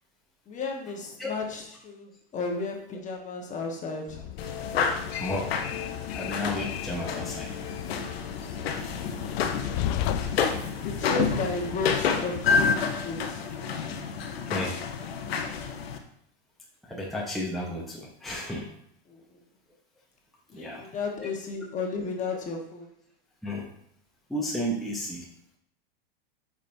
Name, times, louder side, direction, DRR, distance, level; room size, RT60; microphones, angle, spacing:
voice 1, 0.5-4.3 10.8-13.5 19.1-19.4 20.5-22.9, left 3 dB, 25° left, 1 dB, 1.3 m, -34 dB
Train, 4.1-12.4, left 10 dB, 50° left, 0.5 m, -36 dB
sound 1, 4.4-16.0, left 5 dB, 90° left, 1.0 m, -29 dB
voice 2, 5.2-5.5 5.8-7.6 14.4-14.7 16.8-18.7 20.5-20.8 21.2-21.3 23.4-23.7 24.3-25.3, left 1 dB, ahead, -4 dB, 1.0 m, -33 dB
8.3 x 5.3 x 2.7 m, 0.71 s
hypercardioid pair, 125°, 30 cm